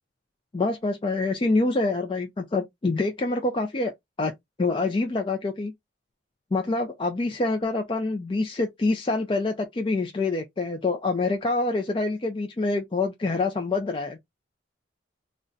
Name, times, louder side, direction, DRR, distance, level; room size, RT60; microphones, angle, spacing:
voice 1, 0.5-3.9 4.2-4.3 4.6-5.7 6.5-14.2, left 3 dB, 25° left, 0.4 m, -26 dB
2.4 x 2.1 x 3.8 m
head